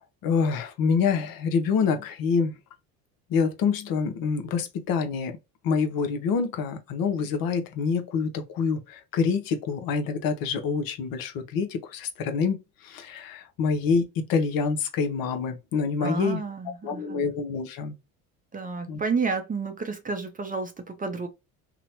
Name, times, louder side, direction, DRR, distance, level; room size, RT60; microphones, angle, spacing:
voice 1, 0.2-2.6 3.3-5.4 5.6-16.4 16.8-18.0 18.9-19.0, left 5 dB, 55° left, 0.8 m, -26 dB
voice 2, 16.0-17.3 18.5-21.3, right 4 dB, 20° right, 0.6 m, -31 dB
2.9 x 2.1 x 2.8 m
hypercardioid pair, 70°, 42 cm